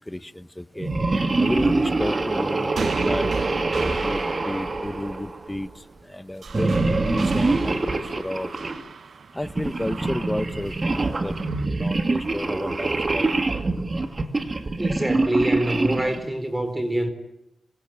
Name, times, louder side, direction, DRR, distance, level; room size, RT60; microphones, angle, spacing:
voice 1, 0.1-0.9 1.4-3.3 3.8-8.5 9.3-11.4 11.7-13.4, left 1 dB, 10° left, 12 dB, 1.2 m, -32 dB
sound 1, 0.8-5.6 6.5-8.8 9.4-16.3, right 2 dB, 30° right, 2.5 m, -25 dB
sound 2, 2.4-11.7, right 5 dB, 65° right, 1.1 m, -38 dB
voice 2, 14.8-17.1, right 1 dB, 15° right, 9 dB, 4.2 m, -25 dB
27.0 x 25.0 x 8.9 m, 0.88 s
wide cardioid pair, 120°, 0 cm